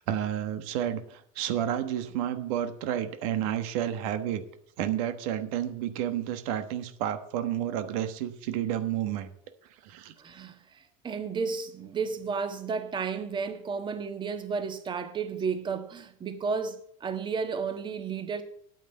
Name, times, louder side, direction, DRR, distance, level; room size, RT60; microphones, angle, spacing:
voice 1, 0.0-4.4 4.8-9.3 9.8-10.1, right 10 dB, 75° right, 1.2 m, -30 dB
voice 2, 10.2-18.4, right 5 dB, 25° right, 1.5 m, -33 dB
9.1 x 8.1 x 8.9 m
supercardioid pair, 115°, 18 cm